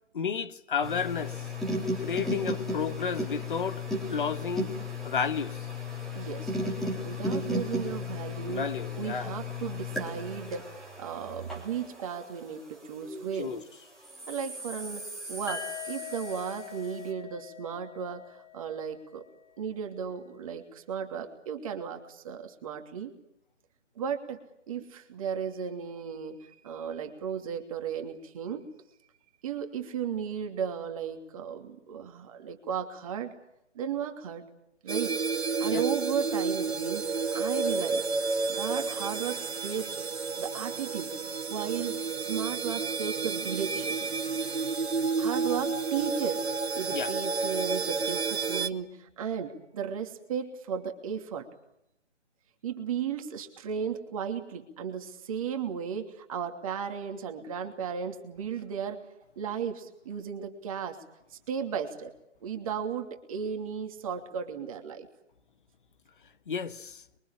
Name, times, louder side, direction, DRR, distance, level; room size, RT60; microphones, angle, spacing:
voice 1, 0.1-1.4 2.0-3.8 4.1-4.7 5.0-5.7 8.5-9.3 13.4-13.6 35.7-35.8 46.9-47.1 66.5-67.0, left 6 dB, 45° left, 1.8 m, -32 dB
sound 1, 0.8-13.5 14.0-16.9, left 2 dB, ahead, 3.8 m, -35 dB
voice 2, 6.1-6.6 7.0-8.7 9.0-13.5 14.3-19.2 19.6-23.1 24.0-24.4 24.7-28.7 29.4-33.3 33.7-34.4 34.8-35.1 35.6-38.1 38.5-40.1 40.4-41.1 41.5-44.0 45.2-46.4 46.7-51.5 52.6-59.0 59.4-61.0 61.3-62.1 62.4-65.1, right 7 dB, 30° right, 2.9 m, -35 dB
sound 2, 15.5-19.4, left 9 dB, 70° left, 4.0 m, -43 dB
sound 3, 34.9-48.7, right 4 dB, 60° right, 2.2 m, -31 dB
30.0 x 24.0 x 7.4 m
figure-of-eight pair, 150°, 36 cm